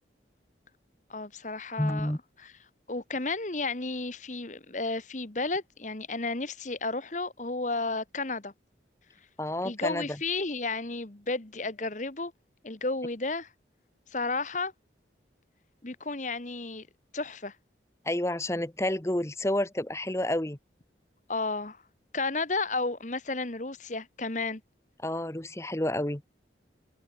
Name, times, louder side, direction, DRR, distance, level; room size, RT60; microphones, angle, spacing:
voice 1, 1.1-2.1 2.4-2.5 2.9-8.5 9.6-12.3 12.6-13.5 14.1-14.7 15.8-16.9 17.1-17.5 21.3-21.8 22.1-24.6, left 3 dB, 40° left, 1.4 m, -32 dB
voice 2, 1.8-2.2 9.4-10.1 18.0-20.6 25.0-26.2, left 1 dB, 15° left, 1.0 m, -29 dB
head